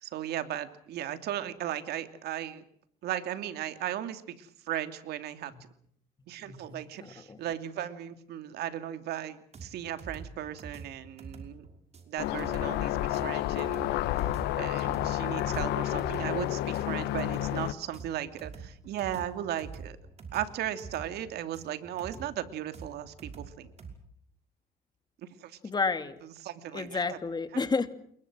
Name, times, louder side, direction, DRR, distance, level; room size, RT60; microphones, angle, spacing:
voice 1, 0.0-2.6 3.0-5.5 6.3-11.6 12.1-14.3 14.5-20.0 20.3-23.7 25.2-25.6 26.4-27.0, right 11 dB, 75° right, 10 dB, 2.7 m, -36 dB
voice 2, 6.4-7.4 25.6-26.2 26.7-27.9, left 4 dB, 25° left, 10 dB, 2.5 m, -31 dB
sound 1, 9.5-23.9, right 5 dB, 40° right, 5.8 m, -46 dB
sound 2, 12.2-17.7, left 14 dB, 85° left, 1.4 m, -30 dB
29.0 x 22.5 x 6.2 m, 0.66 s
cardioid pair, 110°, 17 cm